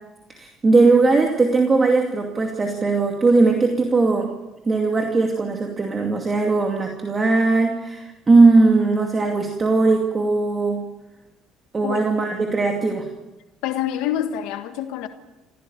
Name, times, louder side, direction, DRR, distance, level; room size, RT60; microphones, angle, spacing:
voice 1, 0.3-4.3 4.7-10.8 11.7-13.1, right 3 dB, 20° right, 2.5 m, -19 dB
voice 2, 13.6-15.1, left 11 dB, 90° left, 1.7 m, -26 dB
27.5 x 16.0 x 9.3 m
cardioid pair, 160°, 0 cm